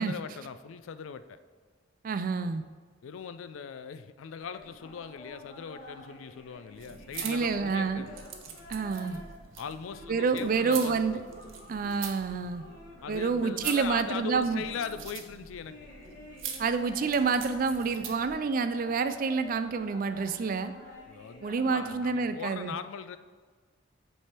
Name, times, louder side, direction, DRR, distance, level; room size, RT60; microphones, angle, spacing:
voice 1, 0.0-1.4 3.0-8.2 9.6-11.2 13.0-15.8 21.1-23.2, left 6 dB, 90° left, 12 dB, 0.4 m, -40 dB
voice 2, 2.0-2.6 7.2-8.0 8.7-9.2 10.1-11.2 11.7-12.6 13.1-14.6 16.6-20.7 21.4-22.7, right 5 dB, 45° right, 10 dB, 0.3 m, -28 dB
sound 1, 4.4-22.1, left 1 dB, 45° left, 1.3 m, -50 dB
sound 2, 6.7-18.4, right 7 dB, 85° right, 0.7 m, -44 dB
7.6 x 3.4 x 4.3 m, 1.5 s
head